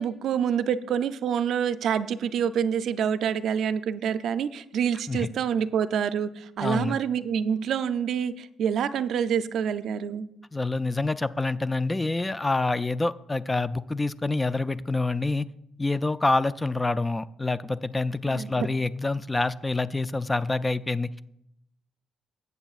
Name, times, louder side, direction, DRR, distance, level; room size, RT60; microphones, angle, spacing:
voice 1, 0.0-10.3 18.3-18.7, right 8 dB, 70° right, 12 dB, 0.4 m, -27 dB
voice 2, 6.6-6.9 10.5-15.5 15.8-21.1, left 2 dB, 15° left, 15 dB, 0.3 m, -27 dB
14.5 x 8.1 x 2.4 m, 0.80 s
cardioid pair, 90°, 0 cm